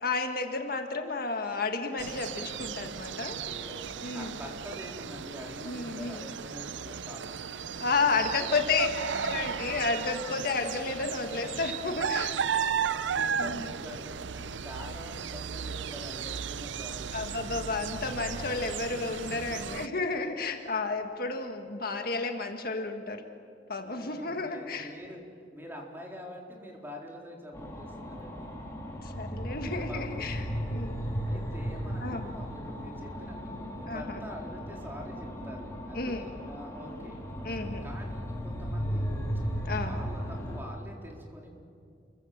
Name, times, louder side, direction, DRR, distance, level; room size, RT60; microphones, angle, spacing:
voice 1, 0.0-3.4 4.0-4.4 5.6-6.2 7.8-8.9 9.2-12.4 13.4-13.6 17.1-23.2 23.7-24.9 29.0-31.1 32.0-32.3 33.9-34.2 35.9-36.3 37.4-37.9 39.6-39.9, left 3 dB, 55° left, 5 dB, 1.7 m, -32 dB
sound 1, 2.0-19.9, right 7 dB, 80° right, 0.7 m, -35 dB
voice 2, 3.2-8.8 11.0-11.1 12.3-12.8 13.1-17.1 19.3-19.5 23.8-25.2 25.5-28.6 29.6-30.3 31.3-37.2 37.8-39.1 39.8-41.6, equal, 10° right, -1 dB, 4.2 m, -46 dB
sound 2, 27.5-40.6, equal, 15° left, 4.2 m, -36 dB
29.5 x 23.5 x 7.4 m, 2.3 s
head